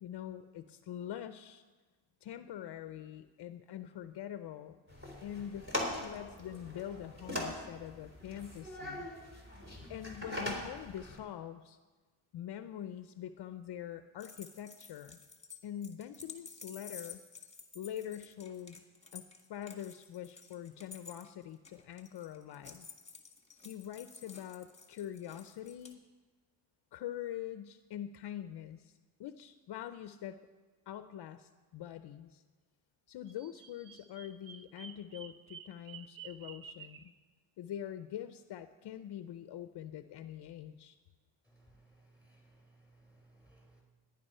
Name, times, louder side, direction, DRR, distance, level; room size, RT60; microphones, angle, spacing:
voice 1, 0.0-1.6 2.2-4.7 5.2-9.1 9.9-11.8 12.3-15.2 15.6-17.2 17.7-18.8 19.1-19.2 19.5-22.9 23.6-26.0 26.9-30.4 30.9-32.4 33.1-37.1 37.6-41.0, left 10 dB, 55° left, 10 dB, 0.7 m, -44 dB
sound 1, 4.9-11.2, left 1 dB, 25° right, 3.7 m, -41 dB
sound 2, 14.2-25.9, left 5 dB, 15° left, 1.7 m, -52 dB
Bird vocalization bird call bird song, 33.3-37.1, right 7 dB, 45° right, 0.9 m, -51 dB
voice 2, 41.4-43.8, right 2 dB, 5° right, 0 dB, 5.0 m, -63 dB
14.5 x 10.5 x 5.6 m, 1.3 s
cardioid pair, 105°, 48 cm